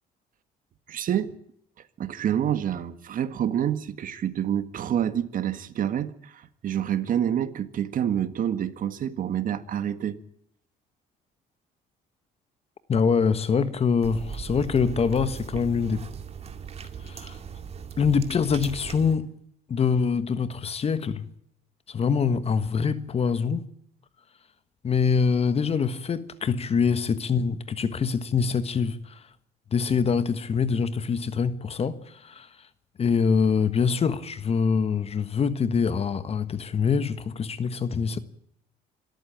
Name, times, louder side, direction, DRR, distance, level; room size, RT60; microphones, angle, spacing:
voice 1, 0.9-1.3 2.0-10.2, right 9 dB, 55° right, 1.8 m, -27 dB
voice 2, 12.9-16.0 17.0-17.4 18.0-19.3 19.7-21.3 21.9-23.7 24.8-29.2 29.7-32.5 33.0-38.2, left 6 dB, 35° left, 1.4 m, -24 dB
sound 1, 14.0-19.2, right 6 dB, 40° right, 2.4 m, -38 dB
26.5 x 13.5 x 9.0 m
cardioid pair, 110°, 17 cm